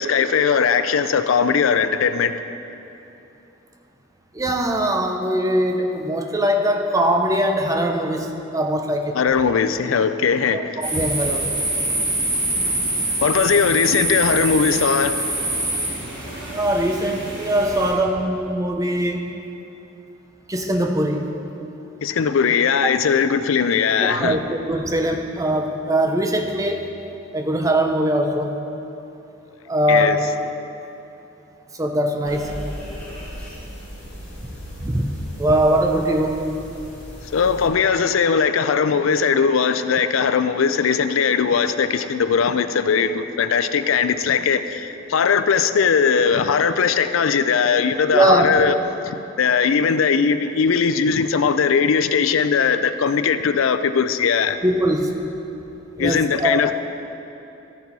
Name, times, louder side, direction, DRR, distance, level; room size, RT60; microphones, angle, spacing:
voice 1, 0.0-2.3 9.1-10.8 13.2-15.3 22.0-24.4 29.9-30.2 37.3-48.8 49.0-54.6 56.0-56.7, left 6 dB, 80° left, 0.4 m, -19 dB
voice 2, 4.3-9.2 10.5-11.7 16.5-19.4 20.5-21.3 22.8-22.9 24.0-26.9 27.3-28.5 29.7-30.3 31.8-32.6 34.8-35.1 35.4-36.5 48.1-48.5 54.6-55.2 56.0-56.6, right 1 dB, 15° right, 0.6 m, -21 dB
sound 1, 10.8-17.9, right 1 dB, 65° right, 2.4 m, -25 dB
sound 2, 32.2-37.7, equal, 5° left, 2.4 m, -37 dB
13.0 x 7.0 x 4.1 m
head